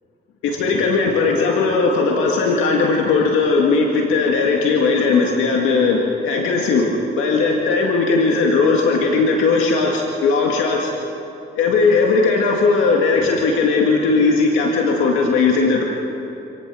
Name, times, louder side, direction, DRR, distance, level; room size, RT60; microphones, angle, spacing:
voice 1, 0.4-6.9 7.1-10.9 11.6-15.8, left 4 dB, 90° left, 0 dB, 2.0 m, -18 dB
26.5 x 18.0 x 6.3 m, 2.9 s
cardioid pair, 90°, 20 cm